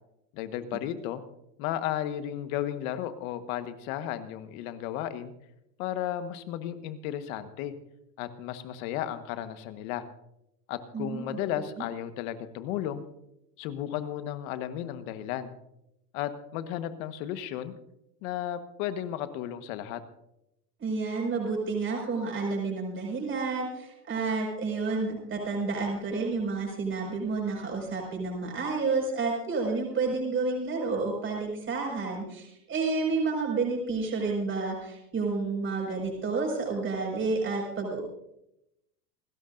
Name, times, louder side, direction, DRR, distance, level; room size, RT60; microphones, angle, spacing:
voice 1, 0.3-1.2 1.6-5.3 5.8-7.7 8.2-10.0 10.7-13.0 13.6-15.5 16.1-17.7 18.2-20.0, left 11 dB, 55° left, 10 dB, 1.5 m, -34 dB
voice 2, 10.9-11.4 20.8-38.0, right 4 dB, 25° right, 0 dB, 5.6 m, -30 dB
28.0 x 13.0 x 2.6 m, 0.83 s
hypercardioid pair, 120°, 49 cm